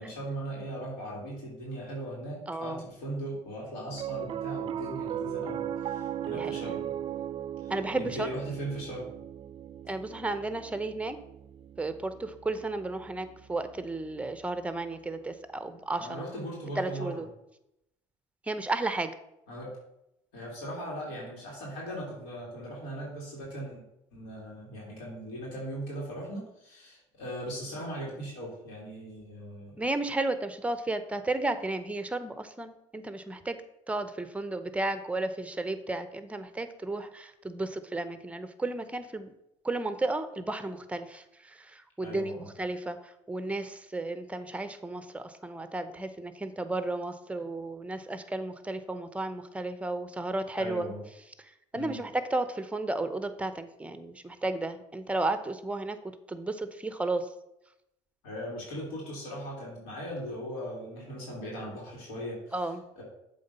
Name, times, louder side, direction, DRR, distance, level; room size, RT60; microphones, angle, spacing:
voice 1, 0.0-6.9 7.6-9.0 15.9-17.2 19.5-19.7 20.3-23.8 24.1-29.8 42.0-42.5 50.5-51.0 51.7-52.0 58.2-62.6 63.0-63.1, right 1 dB, 85° left, -3 dB, 2.6 m, -39 dB
voice 2, 2.5-2.8 6.3-6.7 7.7-8.3 9.9-11.2 11.8-16.3 16.8-17.3 18.5-19.1 29.8-33.6 33.9-39.3 39.6-50.9 51.7-57.3 62.5-62.9, right 2 dB, 10° right, 10 dB, 0.7 m, -33 dB
Piano, 3.9-14.4, right 10 dB, 40° right, 0.4 m, -38 dB
7.6 x 3.8 x 5.5 m, 0.84 s
supercardioid pair, 90°, 13 cm